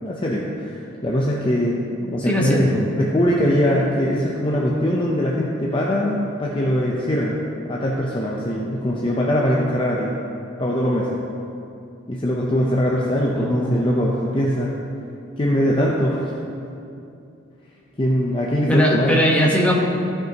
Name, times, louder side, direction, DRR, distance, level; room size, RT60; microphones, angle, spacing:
voice 1, 0.0-1.8 2.1-7.4 7.7-10.1 10.6-11.1 12.1-14.7 15.4-16.3 18.0-19.2, equal, 25° left, -4 dB, 0.7 m, -21 dB
voice 2, 2.3-2.8 13.3-13.9 18.7-19.7, equal, 5° left, -3 dB, 1.2 m, -20 dB
15.5 x 6.3 x 2.9 m, 2.7 s
head